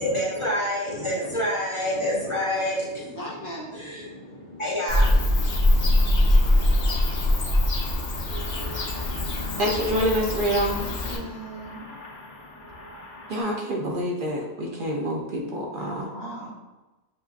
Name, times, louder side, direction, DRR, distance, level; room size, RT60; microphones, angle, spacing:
voice 1, 0.0-7.3, left 1 dB, 30° left, -6 dB, 0.9 m, -29 dB
voice 2, 3.1-3.8 10.5-11.8 15.8-16.5, right 1 dB, 20° right, -5 dB, 0.6 m, -38 dB
Bird / Cricket, 4.9-11.2, left 1 dB, 90° left, 1.3 m, -22 dB
sound 1, 8.3-13.4, left 1 dB, 50° left, 1.1 m, -42 dB
voice 3, 9.6-10.7 13.3-16.1, equal, 55° right, -1 dB, 0.7 m, -26 dB
7.4 x 2.5 x 2.4 m, 1.1 s
omnidirectional pair, 1.2 m